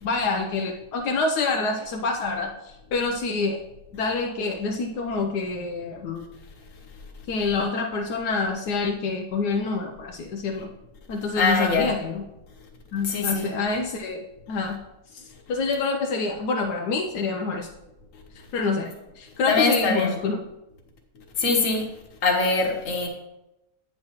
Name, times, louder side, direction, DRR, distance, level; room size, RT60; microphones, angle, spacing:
voice 1, 0.0-3.6 3.9-6.2 7.3-10.7 11.1-12.2 12.9-14.8 15.1-17.7 18.3-20.4, left 4 dB, 80° left, 2 dB, 1.3 m, -27 dB
voice 2, 11.4-11.9 13.0-13.5 19.5-20.2 21.4-21.9 22.2-23.1, left 3 dB, 55° left, 1 dB, 1.6 m, -22 dB
9.0 x 7.6 x 2.9 m, 0.94 s
omnidirectional pair, 1.7 m